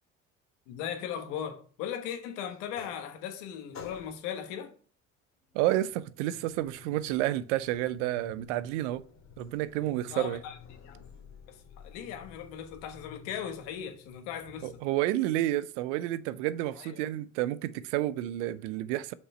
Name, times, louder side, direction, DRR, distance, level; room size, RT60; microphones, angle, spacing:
voice 1, 0.7-4.7 10.1-10.6 10.8-11.0 11.5-14.7 16.8-17.0, left 9 dB, 75° left, 1.3 m, -38 dB
sound 1, 2.5-3.4 3.7-4.4 5.5-14.9, left 7 dB, 50° left, 2.4 m, -51 dB
voice 2, 5.5-9.0 9.4-10.4 14.6-19.1, right 14 dB, 75° right, 0.5 m, -30 dB
6.1 x 5.1 x 5.5 m
hypercardioid pair, 60°, 36 cm